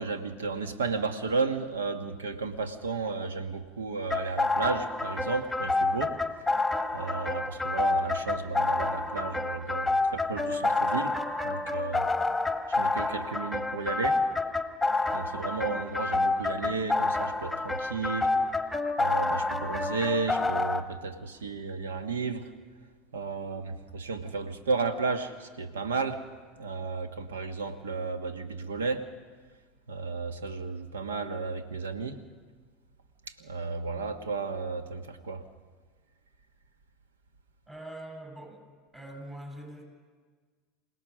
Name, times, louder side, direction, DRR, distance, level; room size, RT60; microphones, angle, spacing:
voice 1, 0.0-6.2 6.9-11.2 11.4-12.1 12.8-14.2 15.1-18.3 19.0-22.5 23.1-26.2 26.6-29.0 29.9-32.2 33.4-35.4, right 4 dB, 85° right, 9 dB, 1.4 m, -33 dB
sound 1, 4.1-20.8, left 3 dB, 5° left, 1.5 m, -28 dB
voice 2, 37.7-38.6 38.9-39.8, right 1 dB, 20° right, 2 dB, 7.7 m, -43 dB
27.0 x 17.5 x 6.3 m, 1.5 s
hypercardioid pair, 85°, 0 cm